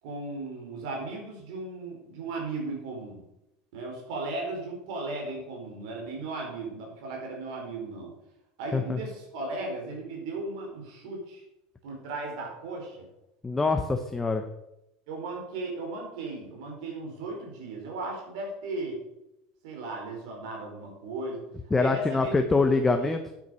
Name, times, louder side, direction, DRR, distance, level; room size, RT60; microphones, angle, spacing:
voice 1, 0.0-3.2 3.7-8.1 8.6-11.4 11.8-13.1 15.1-19.0 19.6-21.5 21.8-22.7 23.0-23.1, right 2 dB, 75° right, 1 dB, 4.4 m, -36 dB
voice 2, 13.4-14.4 21.7-23.3, left 3 dB, 10° left, 6 dB, 0.6 m, -25 dB
9.4 x 8.6 x 6.3 m, 0.87 s
cardioid pair, 165°, 3 cm